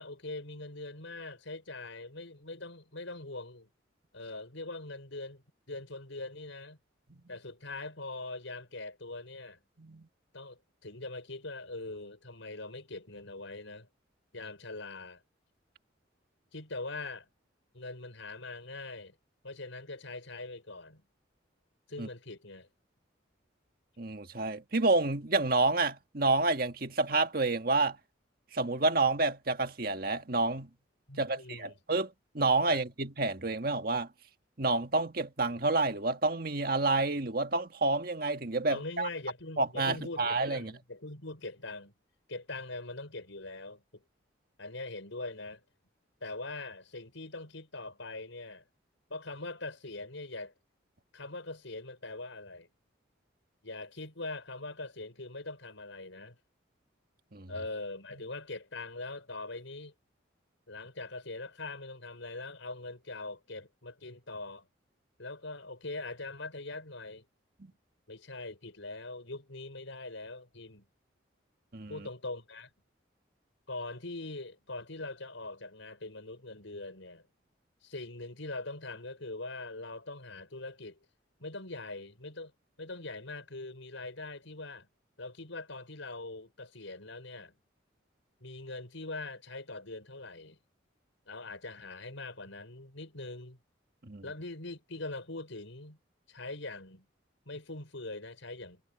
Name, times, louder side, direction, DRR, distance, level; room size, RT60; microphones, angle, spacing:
voice 1, 0.0-3.7 4.1-6.8 7.3-9.6 10.3-13.9 14.3-15.2 16.5-17.3 17.7-19.2 19.4-21.0 21.9-22.7 31.1-31.8 32.7-32.8 38.7-41.9 42.3-44.0 44.6-45.6 46.2-48.6 49.1-50.5 51.1-52.7 53.6-56.4 57.5-59.9 60.7-64.7 65.2-67.3 68.1-70.9 71.9-72.7 73.7-77.2 77.8-81.0 81.4-82.5 82.8-84.9 85.2-87.5 88.4-90.6 91.3-93.6 94.2-96.0 96.3-97.1 97.5-98.8, left 2 dB, 80° left, 5.2 m, -42 dB
voice 2, 24.0-28.0 28.5-30.7 31.2-34.1 34.6-39.1 39.6-40.7 57.3-57.5 71.7-71.9 94.1-94.2, right 3 dB, 50° right, 1.7 m, -29 dB
head